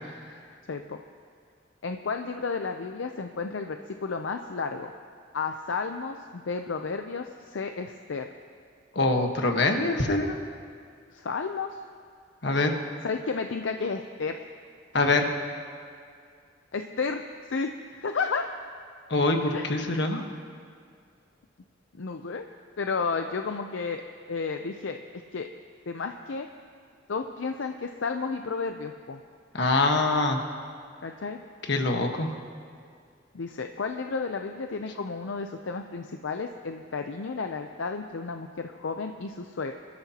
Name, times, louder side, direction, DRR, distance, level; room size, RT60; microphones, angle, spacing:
voice 1, 0.7-1.0 1.8-4.9 5.3-8.3 11.1-11.7 13.0-14.4 16.7-17.2 17.5-17.7 18.0-18.5 19.5-19.7 21.9-22.5 22.8-24.0 24.3-25.0 25.3-25.5 25.9-26.5 27.1-29.2 31.0-31.4 33.3-39.7, left 4 dB, 80° left, 6 dB, 0.6 m, -32 dB
voice 2, 8.9-10.4 12.4-12.8 14.9-15.3 19.1-20.2 29.5-30.4 31.7-32.3, left 2 dB, 65° left, 3 dB, 1.3 m, -24 dB
26.0 x 13.0 x 2.9 m, 2.2 s
head